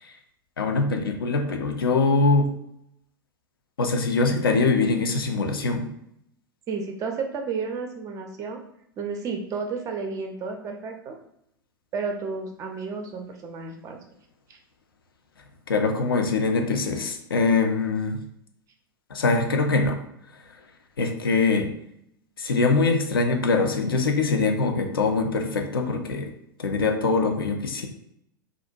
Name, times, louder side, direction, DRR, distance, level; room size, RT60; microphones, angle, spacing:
voice 1, 0.6-2.5 3.8-5.9 15.7-18.2 19.1-20.0 21.0-21.7 22.4-26.3 26.6-27.9, left 3 dB, 75° left, 4 dB, 0.4 m, -23 dB
voice 2, 6.7-8.6 9.0-11.2 11.9-14.0 14.5-14.6, right 5 dB, 25° right, 3 dB, 0.4 m, -32 dB
2.5 x 2.1 x 2.6 m, 0.74 s
figure-of-eight pair, 90°, 12 cm